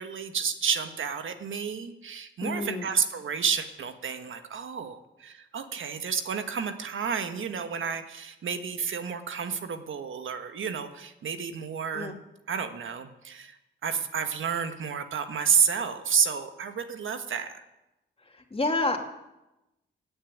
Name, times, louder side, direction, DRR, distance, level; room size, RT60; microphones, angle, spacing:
voice 1, 0.0-12.1 12.5-13.6 13.8-17.6, right 7 dB, 80° right, 8 dB, 1.4 m, -30 dB
voice 2, 2.4-2.9 11.9-12.2 18.5-19.0, left 2 dB, 30° left, 4 dB, 2.5 m, -28 dB
16.0 x 8.8 x 9.3 m, 0.97 s
cardioid pair, 80°, 20 cm